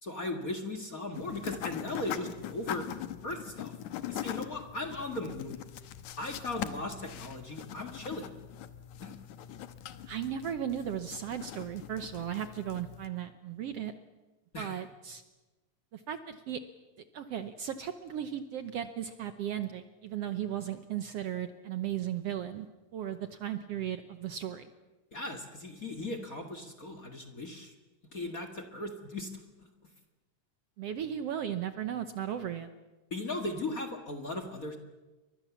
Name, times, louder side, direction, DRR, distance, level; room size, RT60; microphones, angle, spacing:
voice 1, 0.0-2.9 3.2-3.7 4.1-5.6 6.2-8.3 9.0-9.1 14.5-14.8 25.1-27.7 28.1-29.3 33.1-34.8, left 2 dB, 35° left, 5 dB, 1.8 m, -37 dB
write with pen, 1.1-13.1, left 11 dB, 70° left, 2.4 m, -42 dB
voice 2, 10.1-13.9 14.6-15.2 15.9-16.6 17.1-22.7 22.9-24.7 30.8-32.7, right 10 dB, 65° right, 10 dB, 1.7 m, -36 dB
29.0 x 23.5 x 7.2 m, 1.2 s
omnidirectional pair, 3.5 m